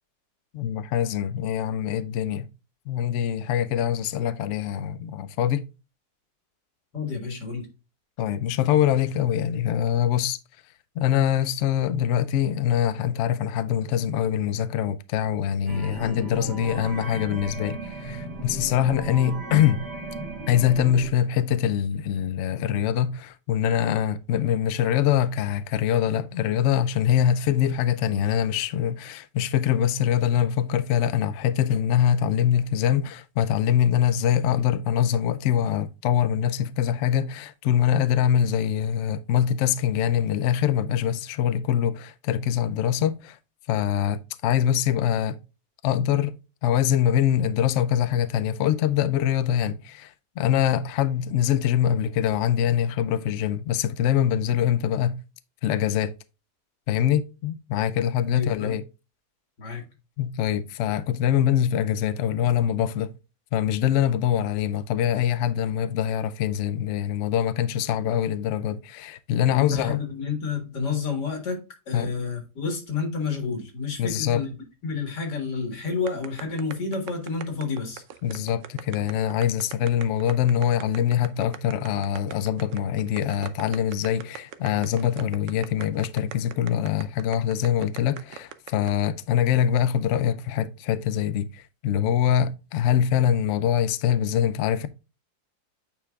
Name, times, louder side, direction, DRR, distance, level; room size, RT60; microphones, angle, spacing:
voice 1, 0.5-2.5 2.9-5.6 8.2-10.4 11.0-19.8 20.5-43.4 43.7-45.4 45.8-46.3 46.6-55.2 55.6-56.1 56.9-58.8 60.2-63.1 63.5-70.0 71.9-72.1 74.0-74.4 78.2-94.9, left 10 dB, 70° left, 0.7 m, -24 dB
voice 2, 6.9-7.7 58.3-58.8 59.6-59.8 69.4-71.6 71.9-74.5 74.8-78.0, left 5 dB, 90° left, 2.3 m, -30 dB
sound 1, 15.7-21.1, right 2 dB, 80° right, 2.2 m, -36 dB
sound 2, 76.1-88.9, right 9 dB, 65° right, 0.8 m, -40 dB
8.8 x 4.8 x 2.3 m
omnidirectional pair, 1.8 m